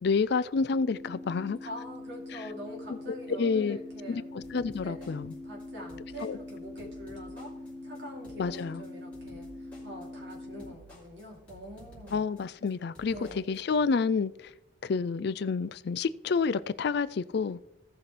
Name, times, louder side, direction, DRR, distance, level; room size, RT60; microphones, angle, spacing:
voice 1, 0.0-1.6 3.4-3.8 4.1-5.3 6.2-6.4 8.4-8.8 12.1-14.5 14.8-17.6, left 5 dB, 55° left, 0.4 m, -29 dB
sound 1, 0.7-10.7, left 1 dB, 15° right, 0.8 m, -43 dB
voice 2, 1.6-4.2 4.8-7.5 7.8-12.2 13.1-13.4, equal, 60° right, 2.9 m, -45 dB
sound 2, 4.4-13.6, left 1 dB, 5° left, 2.8 m, -54 dB
17.0 x 5.9 x 3.3 m
head